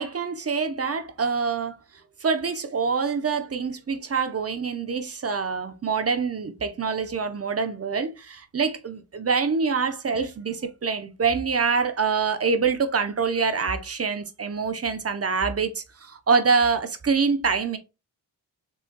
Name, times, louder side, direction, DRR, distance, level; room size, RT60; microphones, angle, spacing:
voice 1, 0.0-1.8 2.2-17.8, right 5 dB, 35° right, 0.7 m, -25 dB
3.6 x 3.1 x 2.2 m
cardioid pair, 45°, 43 cm